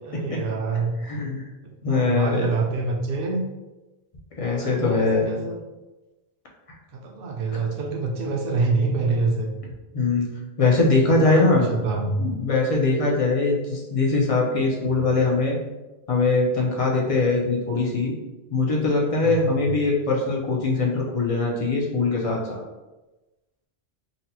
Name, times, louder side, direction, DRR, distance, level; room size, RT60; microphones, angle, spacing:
voice 1, 0.0-1.0 1.6-3.4 4.6-5.6 6.9-9.5 11.2-12.2 19.2-19.7, right 3 dB, 65° right, 2 dB, 0.7 m, -26 dB
voice 2, 1.0-1.5 1.8-2.5 4.4-5.3 9.9-10.3 10.6-11.6 12.2-15.6 16.1-18.1 18.5-22.6, left 3 dB, 40° left, -2 dB, 0.5 m, -22 dB
4.0 x 2.1 x 2.7 m, 1.1 s
omnidirectional pair, 1.1 m